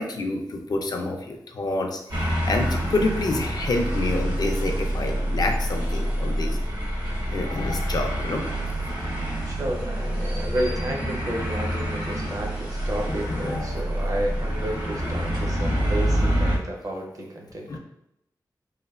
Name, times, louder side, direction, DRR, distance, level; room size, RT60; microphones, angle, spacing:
voice 1, 0.0-6.6 7.3-8.4 10.4-10.5 13.0-13.8 17.7-17.8, left 2 dB, 60° left, 3 dB, 0.4 m, -28 dB
sound 1, 2.1-16.6, equal, 80° right, 1.0 m, -27 dB
voice 2, 9.5-17.8, right 1 dB, 50° right, 0 dB, 0.5 m, -31 dB
3.1 x 2.1 x 2.3 m, 0.81 s
wide cardioid pair, 100°, 8 cm